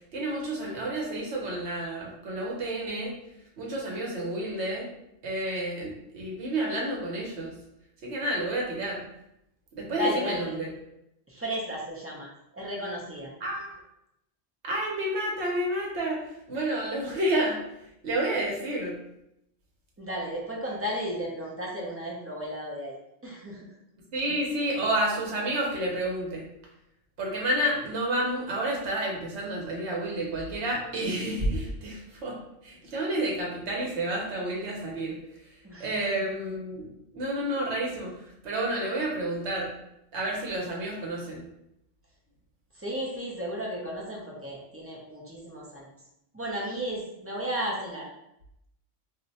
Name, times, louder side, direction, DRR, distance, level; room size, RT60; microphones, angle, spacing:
voice 1, 0.1-3.1 3.6-4.9 5.2-7.5 8.0-9.1 9.7-10.7 13.4-13.7 14.6-16.2 16.5-17.6 18.0-19.0 24.1-26.4 27.2-32.4 32.6-35.2 35.8-36.9 37.1-39.7 40.1-41.5, right 1 dB, 75° right, -2 dB, 1.1 m, -30 dB
voice 2, 9.9-10.5 11.3-13.3 20.0-23.0 23.2-23.7 35.6-36.1 42.7-45.9 46.3-48.1, equal, 20° right, -3 dB, 0.4 m, -34 dB
2.6 x 2.1 x 3.9 m, 0.82 s
omnidirectional pair, 1.2 m